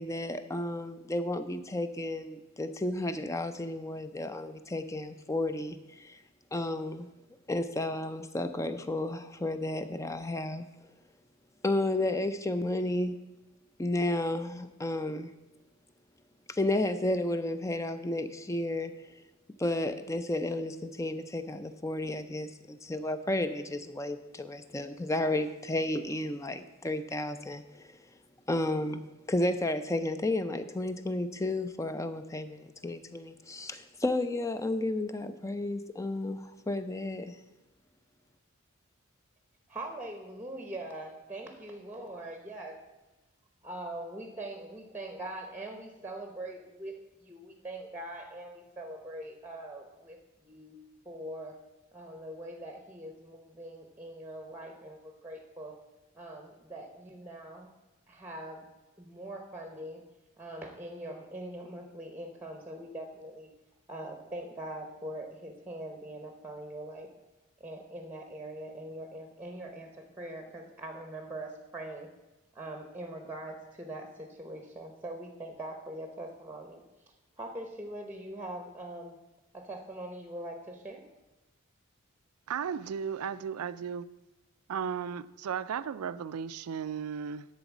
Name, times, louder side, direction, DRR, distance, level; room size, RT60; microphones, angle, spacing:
voice 1, 0.0-6.2 6.5-7.1 7.5-10.6 11.6-13.2 13.8-15.3 16.5-18.9 19.6-27.9 28.5-37.4, left 1 dB, 15° left, 10 dB, 0.4 m, -32 dB
voice 2, 39.7-42.8 43.6-50.8 51.0-51.6 51.9-55.8 56.1-57.7 58.1-58.7 59.0-60.1 60.4-63.5 63.9-67.1 67.6-72.1 72.5-76.8 77.4-79.2 79.5-81.0, right 1 dB, 10° right, 5 dB, 0.8 m, -42 dB
voice 3, 82.5-84.1 84.7-87.5, right 7 dB, 90° right, 16 dB, 0.4 m, -35 dB
11.5 x 4.0 x 7.2 m, 1.0 s
head